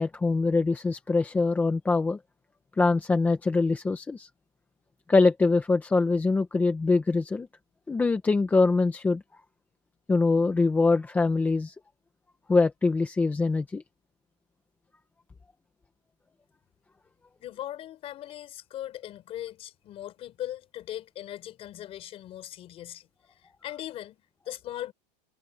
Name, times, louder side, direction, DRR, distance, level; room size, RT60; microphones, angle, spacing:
voice 1, 0.0-2.2 2.8-4.3 5.1-7.5 7.9-9.2 10.1-11.7 12.5-13.8, left 3 dB, 10° left, 1.0 m, -23 dB
voice 2, 17.4-23.1 23.4-24.9, left 12 dB, 25° left, 5.2 m, -39 dB
supercardioid pair, 175°, 21 cm